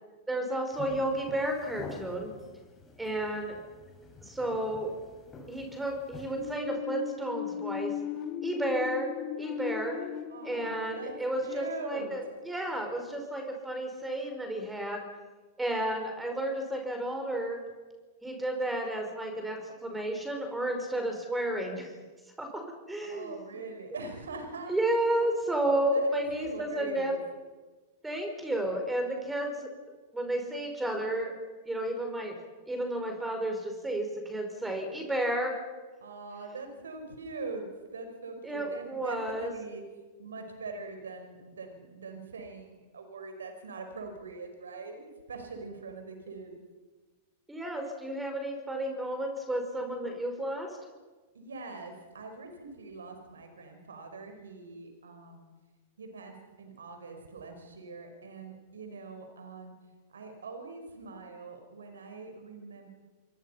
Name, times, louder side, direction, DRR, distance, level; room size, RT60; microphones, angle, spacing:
voice 1, 0.3-2.3 3.0-3.6 4.3-4.9 5.5-7.9 8.4-9.1 9.4-10.0 10.4-15.0 15.6-17.6 18.2-21.9 22.4-22.5 22.9-23.4 24.7-27.1 28.0-29.7 30.1-31.3 31.7-32.3 32.7-35.5 38.4-39.5 47.5-50.7, right 1 dB, 10° right, 4 dB, 5.2 m, -32 dB
sound 1, 0.7-6.6, left 3 dB, 20° left, 7.1 m, -48 dB
sound 2, 6.3-12.0, left 10 dB, 40° left, 2.4 m, -37 dB
voice 2, 10.3-11.2 11.4-12.1 23.1-24.8 25.2-25.4 25.8-27.2 36.0-39.8 40.2-46.6 51.3-55.5 56.0-59.7 60.1-62.9, right 3 dB, 75° right, 5 dB, 5.2 m, -43 dB
28.5 x 22.0 x 5.8 m, 1.3 s
figure-of-eight pair, 95°, 0 cm